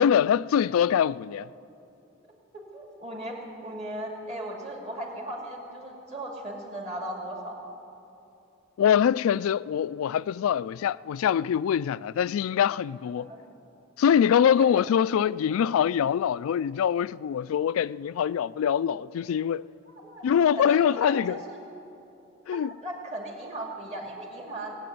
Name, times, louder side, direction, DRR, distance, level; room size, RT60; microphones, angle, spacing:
voice 1, 0.0-1.5 8.8-13.3 14.0-19.6 20.2-21.4 22.5-22.7, left 8 dB, 80° left, 0.3 m, -24 dB
voice 2, 2.5-7.6 13.0-13.4 14.5-14.9 19.9-21.6 22.5-24.8, right 1 dB, 35° right, 2.4 m, -37 dB
19.0 x 7.8 x 9.3 m
head